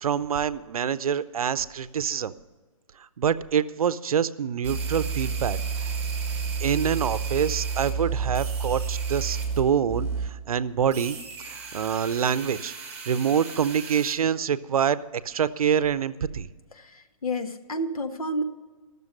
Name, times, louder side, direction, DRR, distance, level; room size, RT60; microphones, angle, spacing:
voice 1, 0.0-2.3 3.2-6.0 6.6-11.2 11.4-12.7 13.0-16.5, right 8 dB, 80° right, 16 dB, 0.6 m, -26 dB
sound 1, 4.6-9.6 9.9-10.3 10.9-14.1, right 5 dB, 10° right, 1.7 m, -31 dB
voice 2, 16.7-18.4, equal, 85° left, 7 dB, 1.2 m, -30 dB
13.5 x 6.8 x 6.5 m, 1.3 s
hypercardioid pair, 155°, 18 cm